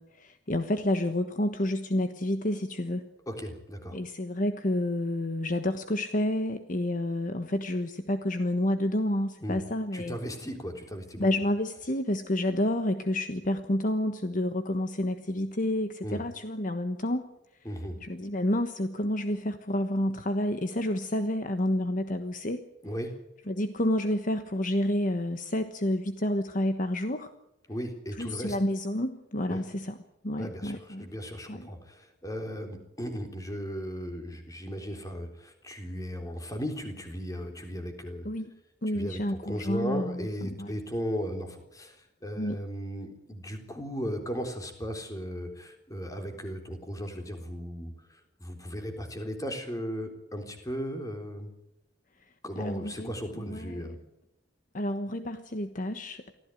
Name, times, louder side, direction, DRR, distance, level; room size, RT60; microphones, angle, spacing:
voice 1, 0.0-3.0 3.9-10.2 11.2-17.2 18.0-22.6 23.5-27.3 28.2-30.0 30.2-31.1 31.5-31.7 38.2-38.5 38.8-40.7 42.4-42.6 52.5-53.9 54.7-56.3, left 1 dB, 50° left, 8 dB, 1.3 m, -29 dB
voice 2, 3.3-4.0 9.4-9.6 9.9-11.3 16.0-16.2 17.7-18.0 22.8-23.1 27.7-28.6 29.5-29.6 30.4-38.3 38.9-42.0 42.2-51.5 52.4-54.0, equal, 20° left, 5 dB, 3.7 m, -36 dB
24.5 x 15.5 x 9.3 m, 0.87 s
head